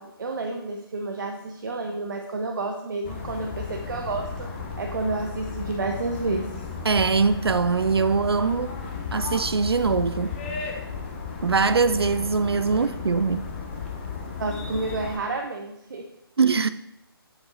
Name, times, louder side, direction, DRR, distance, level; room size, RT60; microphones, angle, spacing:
voice 1, 0.0-4.3 4.8-6.6 12.7-12.8 14.4-16.1, right 3 dB, 55° right, 0.9 m, -30 dB
sound 1, 3.0-15.2, left 5 dB, 30° left, 1.1 m, -34 dB
voice 2, 6.8-8.7 9.1-10.4 11.4-13.5 16.4-16.7, right 4 dB, 75° right, 0.4 m, -22 dB
7.6 x 7.4 x 3.9 m
figure-of-eight pair, 145°, 13 cm